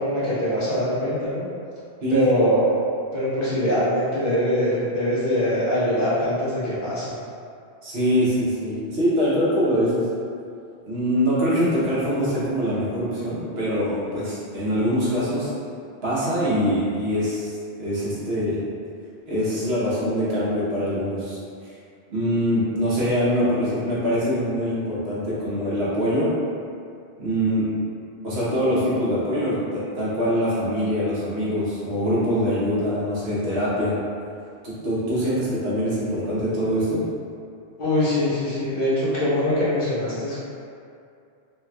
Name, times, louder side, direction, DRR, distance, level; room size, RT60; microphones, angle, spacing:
voice 1, 0.0-1.4 2.1-2.6 3.1-7.1 37.8-40.4, left 1 dB, 50° left, -11 dB, 1.1 m, -23 dB
voice 2, 7.8-10.0 10.9-15.5 16.0-17.5 17.8-18.6 19.3-21.4 22.1-26.3 27.2-27.7 28.2-33.9 34.6-37.0, equal, 65° right, -9 dB, 1.1 m, -23 dB
3.3 x 3.0 x 2.2 m, 2.4 s
omnidirectional pair, 1.1 m